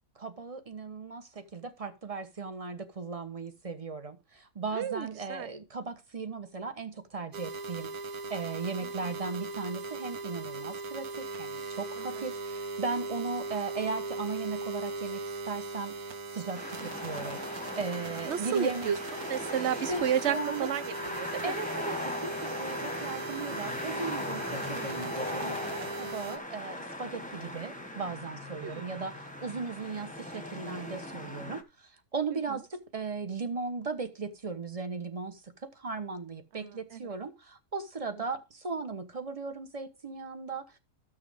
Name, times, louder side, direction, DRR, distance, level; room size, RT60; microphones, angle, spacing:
voice 1, 0.2-7.9 8.3-16.0 16.3-18.9 19.9-20.7 21.4-40.8, right 4 dB, 25° right, 1.2 m, -37 dB
voice 2, 4.7-5.5 12.1-12.3 16.8-17.1 18.3-21.5 28.5-28.9 32.5-32.6 36.5-37.2 38.2-38.3, right 9 dB, 55° right, 1.0 m, -33 dB
sound 1, 7.3-26.4, right 3 dB, 75° right, 1.6 m, -39 dB
sound 2, 16.5-31.6, left 1 dB, 5° left, 1.2 m, -39 dB
14.0 x 6.4 x 3.7 m
omnidirectional pair, 1.6 m